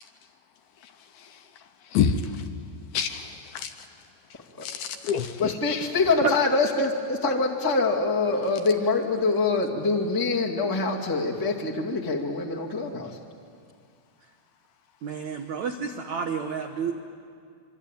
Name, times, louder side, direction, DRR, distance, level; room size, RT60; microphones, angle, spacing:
voice 1, 2.9-3.7 4.6-5.9, left 7 dB, 75° left, 7 dB, 2.4 m, -27 dB
voice 2, 5.4-13.2, left 3 dB, 25° left, -2 dB, 0.4 m, -25 dB
voice 3, 15.0-16.9, right 6 dB, 80° right, 4 dB, 1.6 m, -29 dB
26.0 x 25.0 x 9.1 m, 2.3 s
omnidirectional pair, 5.1 m